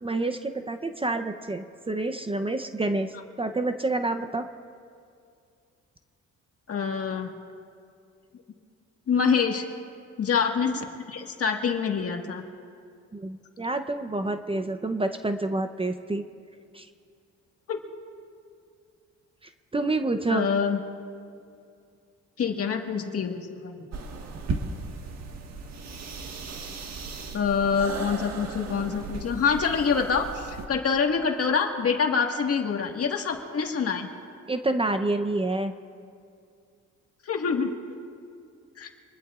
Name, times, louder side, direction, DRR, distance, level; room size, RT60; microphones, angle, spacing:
voice 1, 0.0-4.5 13.1-16.2 16.7-16.9 19.7-20.5 34.5-35.7, right 2 dB, 20° right, 8 dB, 0.7 m, -28 dB
voice 2, 6.7-7.3 9.1-9.6 10.2-12.4 17.7-17.8 20.3-20.8 22.4-23.9 27.3-34.1 37.3-37.7 38.8-38.9, left 6 dB, 50° left, 3 dB, 1.8 m, -26 dB
sound 1, 23.9-30.7, right 4 dB, 60° right, 1.7 m, -36 dB
26.0 x 20.5 x 2.5 m, 2.4 s
cardioid pair, 90°, 30 cm